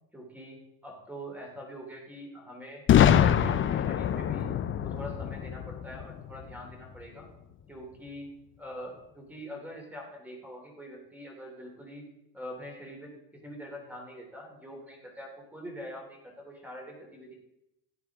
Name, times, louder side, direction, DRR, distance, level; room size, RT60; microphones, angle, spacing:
voice 1, 0.1-2.8 3.2-4.5 4.8-7.3 7.7-8.3 8.6-12.0 12.3-17.3, equal, 5° right, 0 dB, 3.0 m, -44 dB
Boom, 2.9-6.7, left 9 dB, 30° left, 0.5 m, -24 dB
15.0 x 9.6 x 3.6 m, 0.85 s
cardioid pair, 130°, 44 cm